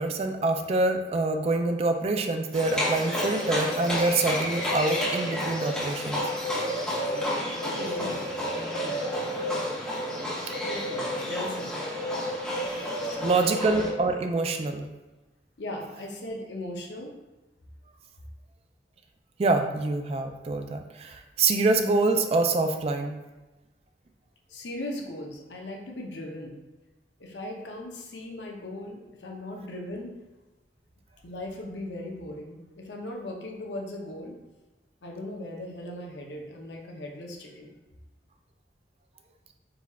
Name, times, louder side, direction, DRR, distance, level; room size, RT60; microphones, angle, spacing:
voice 1, 0.0-6.3 13.2-14.9 19.4-23.2, right 3 dB, 35° right, 6 dB, 0.3 m, -26 dB
Livestock farm animals working animals, 2.5-13.9, equal, 5° left, 1.0 m, -30 dB
voice 2, 7.8-8.9 10.6-11.7 13.0-13.5 15.6-17.1 24.5-26.6 27.2-30.2 31.2-34.3 35.0-37.7, left 1 dB, 85° left, 1 dB, 0.7 m, -38 dB
4.0 x 2.4 x 4.1 m, 1.1 s
head